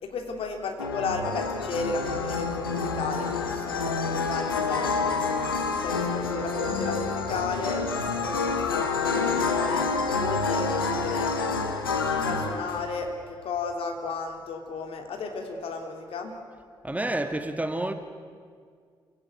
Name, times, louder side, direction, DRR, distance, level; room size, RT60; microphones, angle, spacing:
voice 1, 0.0-5.2 5.8-11.3 12.1-16.3, left 4 dB, 55° left, 3.1 m, -34 dB
sound 1, 0.8-13.0, left 4 dB, 85° left, 1.3 m, -28 dB
voice 2, 16.8-17.9, right 1 dB, 15° right, 1.7 m, -29 dB
28.0 x 17.0 x 9.5 m
figure-of-eight pair, 40°, 12 cm